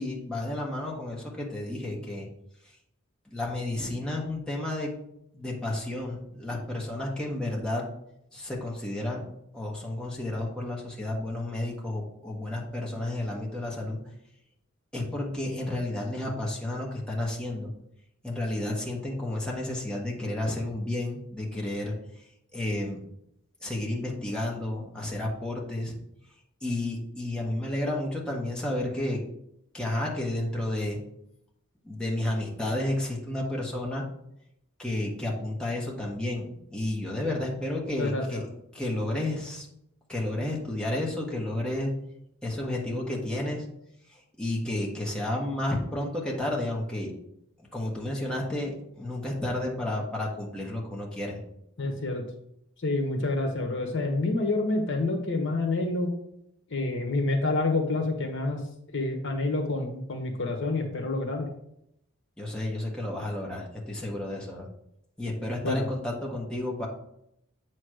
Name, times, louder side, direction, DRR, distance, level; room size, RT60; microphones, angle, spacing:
voice 1, 0.0-2.3 3.3-4.9 5.3-7.8 8.3-14.0 14.9-17.7 18.2-22.2 22.5-23.0 23.6-25.9 26.6-29.2 29.7-31.0 31.8-34.1 34.8-38.4 38.7-39.7 40.1-42.0 42.4-43.7 44.1-47.1 47.7-51.4 62.4-64.7 65.2-66.9, left 1 dB, 5° left, -3 dB, 1.4 m, -31 dB
voice 2, 38.0-38.4 51.8-52.2 52.8-56.1 56.7-58.6 58.9-61.5 65.6-65.9, left 2 dB, 60° left, 3 dB, 1.2 m, -28 dB
8.0 x 3.2 x 6.3 m, 0.76 s
head